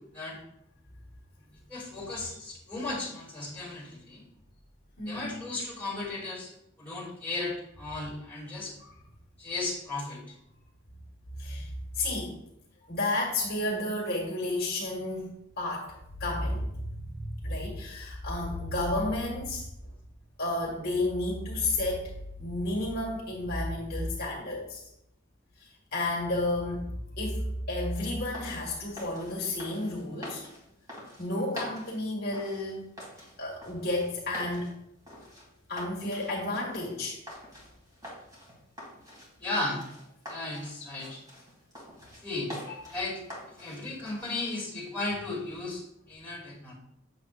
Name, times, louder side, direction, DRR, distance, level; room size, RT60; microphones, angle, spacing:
voice 1, 1.7-4.2 5.1-6.5 6.8-8.7 9.4-10.2 39.4-39.8 40.3-41.2 42.2-43.2 43.6-46.7, left 2 dB, 10° left, -8 dB, 2.5 m, -35 dB
voice 2, 5.0-5.3 8.8-8.9 11.4-12.3 12.9-19.9 20.4-22.1 22.4-24.8 25.6-26.8 27.2-27.4 27.7-30.4 31.2-32.9 33.4-34.7 35.7-37.2, left 2 dB, 50° left, -3 dB, 1.7 m, -32 dB
sound 1, 27.9-44.6, equal, 20° right, 2.3 m, -46 dB
7.9 x 6.7 x 2.5 m, 0.79 s
head